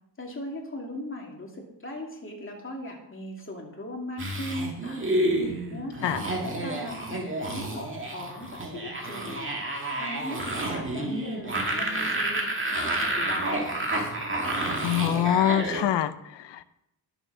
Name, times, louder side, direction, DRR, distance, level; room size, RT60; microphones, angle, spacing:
voice 1, 0.2-5.0 5.7-9.5 10.0-12.4 12.7-14.0, left 1 dB, 30° left, 0 dB, 2.6 m, -38 dB
sound 1, 4.2-15.8, right 1 dB, 30° right, 2.2 m, -30 dB
voice 2, 14.8-16.6, left 11 dB, 90° left, 13 dB, 0.7 m, -25 dB
11.0 x 7.1 x 5.5 m, 0.82 s
wide cardioid pair, 100°, 41 cm